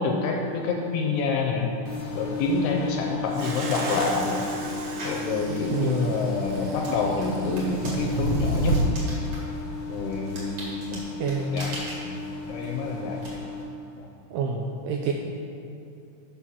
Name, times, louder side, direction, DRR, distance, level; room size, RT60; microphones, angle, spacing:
voice 1, 0.0-1.7 2.2-4.4 5.0-8.8 9.9-10.8 11.5-11.7 12.1-12.2 12.5-13.2 14.0-14.1, left 4 dB, 80° left, 1 dB, 2.5 m, -27 dB
sound 1, 1.8-13.6, left 3 dB, 55° left, 2.1 m, -36 dB
sound 2, 3.3-8.9, right 2 dB, 70° right, 3.0 m, -31 dB
sound 3, 5.0-5.3 5.9-13.3, right 1 dB, 50° right, 1.7 m, -41 dB
voice 2, 5.7-6.2 10.9-11.6 14.3-15.1, right 5 dB, 85° right, 1 dB, 2.3 m, -28 dB
7.1 x 6.2 x 5.7 m, 2.6 s
omnidirectional pair, 5.0 m